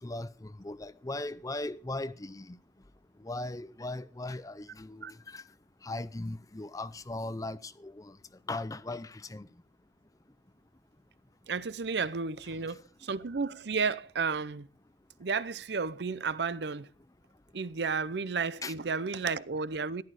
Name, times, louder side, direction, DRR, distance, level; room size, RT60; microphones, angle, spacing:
voice 1, 0.0-2.6 3.2-5.4 5.8-8.2 8.5-9.5 18.6-18.7, left 2 dB, 20° left, 0.5 m, -38 dB
voice 2, 11.5-14.7 15.2-16.9 17.5-20.0, right 5 dB, 70° right, 0.6 m, -32 dB
15.0 x 11.5 x 4.9 m
head